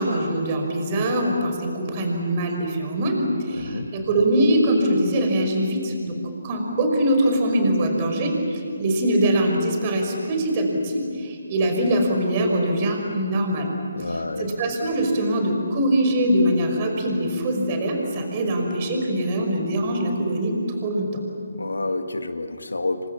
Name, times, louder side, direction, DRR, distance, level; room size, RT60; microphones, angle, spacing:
voice 1, 0.0-6.2 6.4-13.7 14.1-20.6 20.8-21.2, right 1 dB, 30° right, 3 dB, 5.4 m, -23 dB
voice 2, 3.5-3.9 14.0-14.5 21.6-23.1, left 2 dB, 90° left, 7 dB, 2.0 m, -29 dB
29.0 x 24.5 x 7.2 m, 2.4 s
figure-of-eight pair, 155°, 0 cm